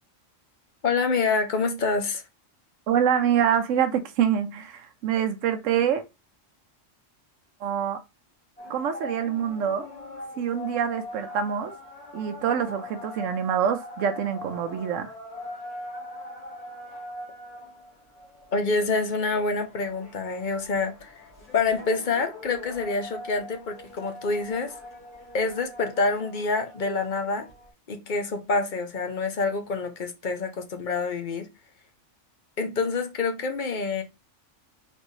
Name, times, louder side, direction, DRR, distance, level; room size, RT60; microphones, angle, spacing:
voice 1, 0.8-2.2 18.5-21.2 21.5-24.8 25.3-27.5 27.9-31.5 32.6-34.0, left 4 dB, 45° left, 0.8 m, -27 dB
voice 2, 2.9-6.0 7.6-8.0 8.7-9.9 10.4-11.7 12.1-15.1, right 8 dB, 85° right, 1.0 m, -25 dB
sound 1, 8.6-27.7, left 2 dB, 30° left, 2.0 m, -42 dB
4.3 x 3.3 x 3.1 m
omnidirectional pair, 1.3 m